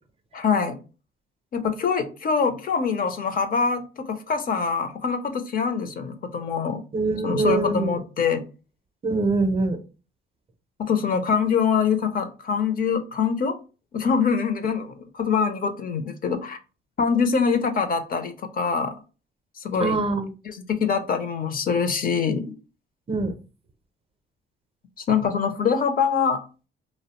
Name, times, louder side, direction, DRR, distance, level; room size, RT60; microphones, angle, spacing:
voice 1, 0.3-0.8 1.5-6.8 7.2-8.4 10.8-13.5 13.9-16.6 17.0-18.9 19.6-20.0 20.4-22.4 25.0-26.4, left 6 dB, 45° left, 0.5 m, -24 dB
voice 2, 6.9-8.0 9.0-9.8 19.8-20.3 23.1-23.3, right 3 dB, 30° right, 0.5 m, -23 dB
2.6 x 2.0 x 2.9 m
cardioid pair, 90°, 20 cm